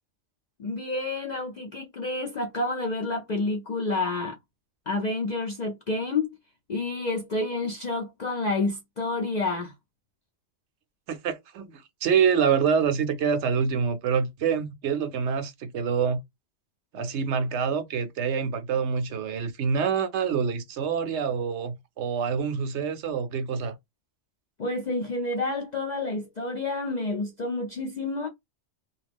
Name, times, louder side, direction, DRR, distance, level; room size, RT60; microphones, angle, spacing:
voice 1, 0.6-4.4 4.9-6.3 6.7-9.7 24.6-28.3, left 2 dB, 60° left, 0.4 m, -29 dB
voice 2, 11.1-16.2 16.9-23.8, right 6 dB, 70° right, 0.8 m, -26 dB
2.8 x 2.3 x 3.4 m
omnidirectional pair, 1.3 m